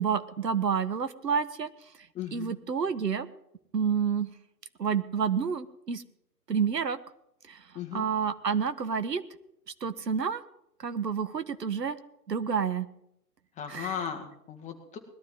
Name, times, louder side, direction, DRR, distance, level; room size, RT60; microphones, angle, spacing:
voice 1, 0.0-1.7 2.3-3.3 3.7-4.3 4.8-6.0 6.5-7.0 7.5-7.6 7.9-9.2 9.8-10.4 10.8-12.0 12.3-12.9 13.7-14.0, right 6 dB, 80° right, 13 dB, 1.5 m, -29 dB
voice 2, 2.1-2.5 7.7-8.0 13.6-15.0, left 8 dB, 15° left, 4 dB, 2.1 m, -37 dB
20.5 x 12.5 x 3.8 m, 0.77 s
figure-of-eight pair, 130°, 49 cm